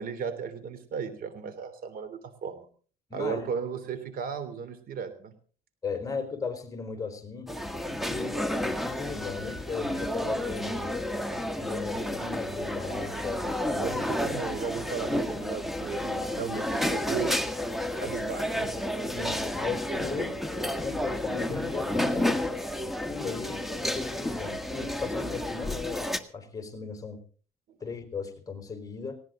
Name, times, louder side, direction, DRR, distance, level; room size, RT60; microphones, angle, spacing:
voice 1, 0.0-2.7 3.1-5.3 13.8-17.3 18.0-18.7, right 6 dB, 60° right, 12 dB, 3.3 m, -35 dB
voice 2, 3.1-3.4 5.8-7.5 8.0-10.9 11.6-14.0 19.1-20.4 20.8-22.4 23.1-27.2 27.8-29.2, left 5 dB, 20° left, 6 dB, 4.6 m, -36 dB
sound 1, 7.5-26.2, left 1 dB, ahead, 1.7 m, -31 dB
19.5 x 18.0 x 3.9 m, 0.42 s
cardioid pair, 110°, 17 cm